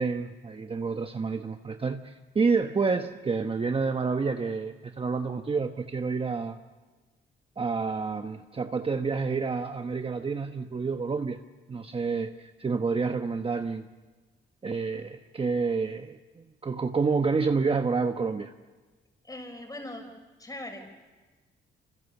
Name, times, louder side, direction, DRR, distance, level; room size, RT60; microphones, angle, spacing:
voice 1, 0.0-6.6 7.6-11.4 11.7-13.9 14.6-18.5, right 4 dB, 30° right, 6 dB, 1.2 m, -29 dB
voice 2, 19.2-20.0 20.4-20.9, left 1 dB, 20° left, 4 dB, 6.2 m, -40 dB
26.0 x 26.0 x 7.2 m, 1.3 s
cardioid pair, 90°, 20 cm